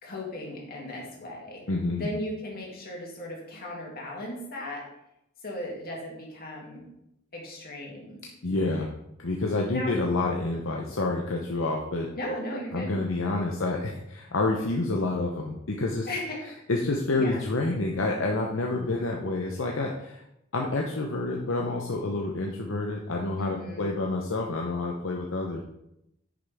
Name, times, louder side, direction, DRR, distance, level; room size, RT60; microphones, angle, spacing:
voice 1, 0.0-1.6 2.0-4.8 5.4-6.9 7.3-8.2 9.7-9.9 12.2-12.9 16.1-16.4 17.2-17.4 23.4-23.9, left 1 dB, 45° left, -2 dB, 2.7 m, -36 dB
voice 2, 1.7-2.1 8.4-8.9 9.2-12.1 12.5-16.1 16.7-20.2 20.5-25.6, left 2 dB, 70° left, 0 dB, 0.9 m, -28 dB
9.9 x 6.5 x 3.6 m, 0.82 s
head